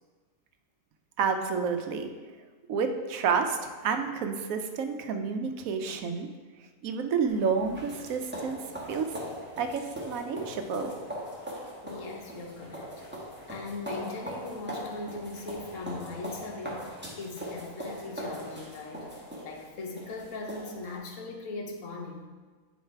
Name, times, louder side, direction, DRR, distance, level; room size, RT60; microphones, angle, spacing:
voice 1, 1.2-2.1 2.7-6.3 6.8-8.6 8.9-9.2 9.6-10.9, right 5 dB, 80° right, 6 dB, 1.1 m, -29 dB
sound 1, 7.3-21.0, equal, 10° right, 1.3 m, -40 dB
voice 2, 11.8-12.9 13.5-22.3, left 3 dB, 70° left, 2 dB, 1.2 m, -40 dB
9.7 x 3.2 x 4.5 m, 1.4 s
omnidirectional pair, 1.4 m